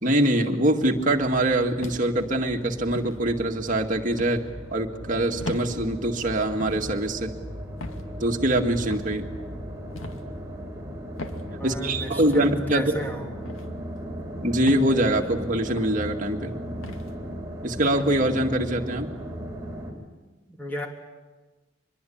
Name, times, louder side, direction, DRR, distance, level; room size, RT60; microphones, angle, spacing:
voice 1, 0.0-4.4 4.7-7.3 8.2-9.3 11.6-12.9 14.4-16.5 17.6-19.1, right 1 dB, 40° right, 2 dB, 2.0 m, -24 dB
sound 1, 0.7-19.9, equal, 15° right, 4.3 m, -37 dB
sound 2, 1.8-2.3 2.9-3.2 4.2-4.4 5.4-5.7 6.6-6.8 7.8-8.1 8.9-9.2 10.0-10.2 11.2-11.4 12.3-12.5 13.5-13.7 14.7-14.9 15.7-15.9 16.8-17.1 18.0-18.2, left 2 dB, 85° left, 2.3 m, -37 dB
voice 2, 11.5-13.4 20.5-20.9, equal, 10° left, 1 dB, 3.3 m, -34 dB
24.5 x 22.0 x 8.7 m, 1.2 s
head